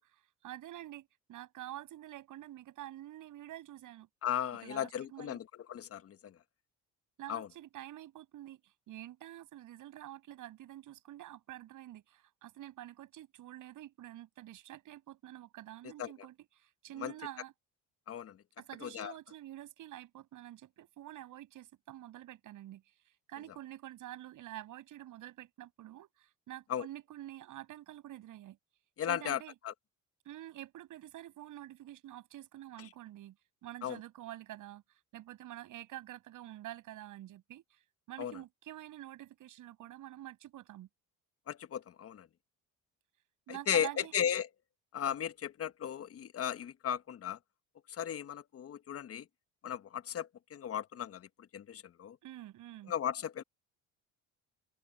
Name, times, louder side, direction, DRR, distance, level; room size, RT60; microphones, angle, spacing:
voice 1, 0.0-4.1 4.6-5.4 7.2-17.5 18.6-28.6 29.1-29.5 30.2-33.4 33.6-37.8 38.1-40.9 43.5-44.1 52.2-52.9, right 13 dB, 65° right, 7.8 m, -48 dB
voice 2, 4.2-6.3 7.3-7.5 16.0-16.1 17.0-17.1 18.1-18.4 18.8-19.1 26.7-26.9 29.0-29.7 33.8-34.0 38.2-38.4 41.5-42.3 43.5-44.5 44.9-47.4 48.0-49.2 49.6-51.3 51.5-52.2 52.9-53.4, left 9 dB, 45° left, 1.3 m, -36 dB
open air
supercardioid pair, 90°, 34 cm